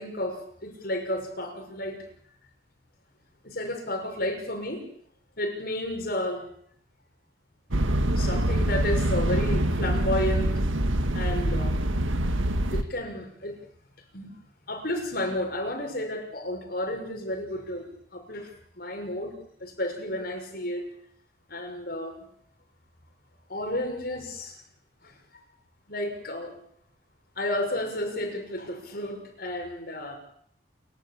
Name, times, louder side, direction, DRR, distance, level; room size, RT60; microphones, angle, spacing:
voice 1, 0.0-2.0 3.4-4.8 5.4-6.4 8.1-10.5 11.1-11.8 12.7-13.5 14.1-14.3 14.7-18.5 18.7-19.3 19.6-20.9 21.5-22.2 23.5-24.6 25.0-25.1 25.9-26.6 27.4-30.2, left 1 dB, 50° left, 3 dB, 6.3 m, -32 dB
sound 1, 7.7-12.8, right 1 dB, 90° right, 1.8 m, -25 dB
30.0 x 13.5 x 8.8 m, 0.66 s
head